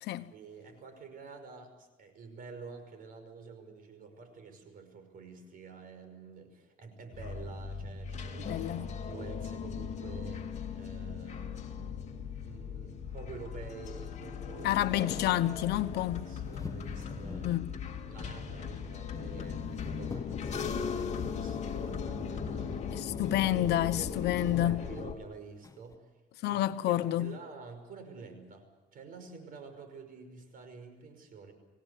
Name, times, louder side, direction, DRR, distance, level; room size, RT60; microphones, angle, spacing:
voice 1, 0.3-8.6 9.0-10.5 10.7-14.8 16.0-17.5 18.1-22.9 23.5-26.1 26.5-26.6 26.9-28.7 28.9-31.5, right 4 dB, 55° right, 5.6 m, -48 dB
sound 1, 7.1-25.2, left 6 dB, 40° left, 2.4 m, -38 dB
voice 2, 8.5-8.9 14.6-16.2 17.4-17.6 22.9-24.8 26.4-27.3, left 13 dB, 80° left, 1.1 m, -29 dB
sound 2, 16.3-17.7 19.2-19.8 20.1-20.6 22.6-22.7 23.1-24.8 25.6-26.0, left 4 dB, 20° left, 0.7 m, -46 dB
26.5 x 17.5 x 8.3 m
cardioid pair, 110°, 17 cm